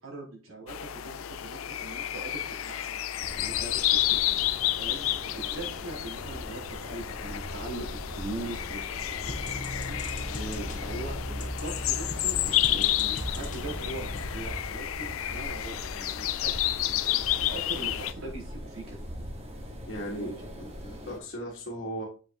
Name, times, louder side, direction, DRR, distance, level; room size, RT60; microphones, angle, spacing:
voice 1, 0.0-3.0 3.4-4.4 4.8-5.0 5.3-8.8 9.2-9.3 9.8-10.0 10.8-19.0 20.0-20.3, right 2 dB, 85° right, -3 dB, 4.2 m, -41 dB
sound 1, 0.7-18.1, left 13 dB, 85° left, 0.5 m, -31 dB
sound 2, 3.2-21.2, equal, 30° right, 1.4 m, -41 dB
sound 3, 9.2-14.5, left 1 dB, 40° left, 1.1 m, -38 dB
voice 2, 10.3-10.8 12.7-13.0 19.9-22.0, equal, 55° left, -6 dB, 1.8 m, -38 dB
7.4 x 6.1 x 2.9 m, 0.36 s
head